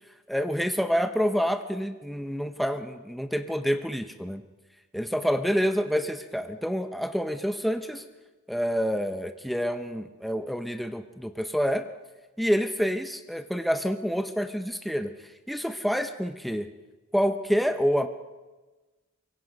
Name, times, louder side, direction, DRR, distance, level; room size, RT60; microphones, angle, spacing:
voice 1, 0.3-4.4 4.9-8.0 8.5-11.9 12.4-15.1 15.5-16.7 17.1-18.1, equal, ahead, 7 dB, 0.8 m, -27 dB
24.0 x 23.0 x 5.3 m, 1.2 s
head